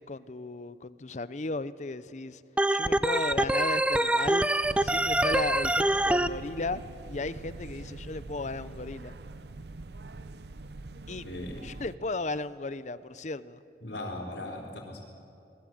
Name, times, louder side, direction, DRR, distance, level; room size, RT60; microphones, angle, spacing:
voice 1, 0.0-2.4 2.7-4.5 4.8-9.1 11.1-11.2 11.6-13.6, left 3 dB, 45° left, 15 dB, 0.7 m, -35 dB
Organ, 2.6-6.3, right 1 dB, 5° right, 0.5 m, -25 dB
sound 1, 4.6-12.0, right 2 dB, 70° right, 0.7 m, -44 dB
voice 2, 11.2-11.7 13.8-15.0, left 1 dB, 80° left, -4 dB, 3.8 m, -38 dB
26.5 x 20.5 x 7.8 m, 2.7 s
head